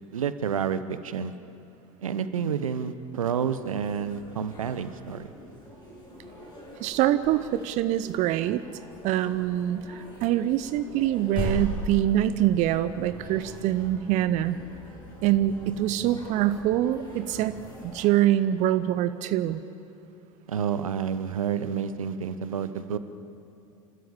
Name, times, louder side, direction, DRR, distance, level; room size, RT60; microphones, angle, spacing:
voice 1, 0.1-1.3 2.0-5.3 20.5-23.0, right 7 dB, 75° right, 12 dB, 1.1 m, -29 dB
sound 1, 3.1-18.1, equal, 25° left, 7.5 m, -40 dB
voice 2, 6.8-8.6 9.0-14.6 15.2-17.6 17.8-19.6, right 12 dB, 45° right, 13 dB, 0.8 m, -24 dB
29.5 x 13.0 x 8.9 m, 2.9 s
figure-of-eight pair, 85°, 17 cm